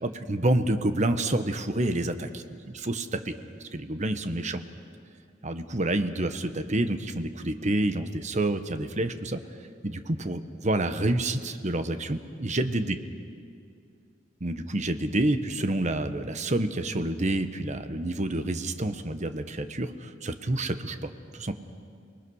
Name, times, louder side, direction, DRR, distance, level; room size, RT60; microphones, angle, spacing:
voice 1, 0.0-3.3 3.7-4.6 5.4-9.4 9.8-13.0 14.4-21.5, right 1 dB, 40° right, 9 dB, 1.2 m, -28 dB
29.5 x 20.0 x 6.4 m, 2.3 s
head